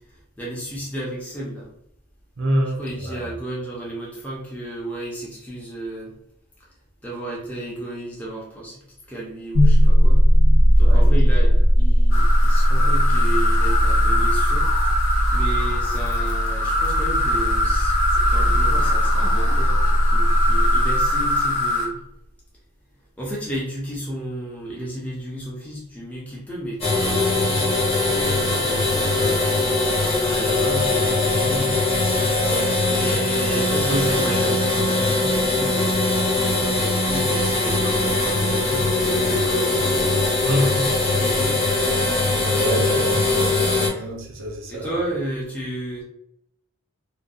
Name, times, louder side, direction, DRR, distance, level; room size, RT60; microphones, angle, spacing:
voice 1, 0.4-1.7 2.8-6.1 7.0-8.8 9.1-10.2 10.8-14.7 15.3-18.0 18.2-22.0 23.2-27.7 28.2-29.4 30.1-31.8 32.8-40.2 40.5-41.6 42.8-43.0 43.9-44.1 44.7-46.0, right 1 dB, 5° left, -6 dB, 0.5 m, -33 dB
voice 2, 2.4-3.3 10.8-11.1 11.5-11.6 32.3-33.2 33.5-33.6 40.4-40.9 42.5-43.2 43.9-45.0, right 1 dB, 60° right, 1 dB, 0.5 m, -27 dB
sound 1, 9.5-21.6, equal, 85° left, 0.8 m, -18 dB
sound 2, 12.1-21.9, left 1 dB, 55° left, 0.8 m, -24 dB
sound 3, 26.8-43.9, left 2 dB, 30° left, 0.9 m, -21 dB
2.6 x 2.2 x 2.3 m, 0.75 s
head